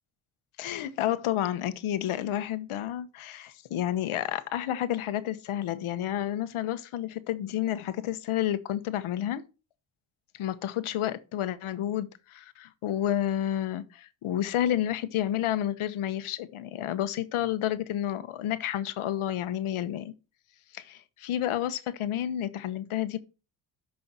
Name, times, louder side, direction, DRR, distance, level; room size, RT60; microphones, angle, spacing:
voice 1, 0.6-9.4 10.3-20.1 20.7-23.2, left 11 dB, 80° left, 1.0 m, -30 dB
13.0 x 5.5 x 2.9 m
cardioid pair, 70°, 49 cm